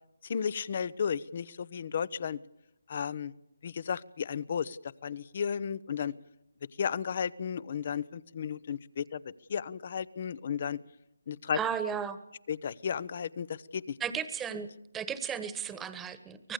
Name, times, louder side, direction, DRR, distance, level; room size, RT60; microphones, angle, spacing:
voice 1, 0.2-2.4 2.9-3.3 3.6-4.8 5.0-6.1 6.8-10.8 11.3-11.6 12.5-13.9, left 7 dB, 45° left, 20 dB, 0.9 m, -34 dB
voice 2, 11.5-12.2 14.0-14.7 14.9-16.5, right 7 dB, 10° right, 12 dB, 1.5 m, -34 dB
24.5 x 19.5 x 6.8 m, 0.84 s
figure-of-eight pair, 160°, 0 cm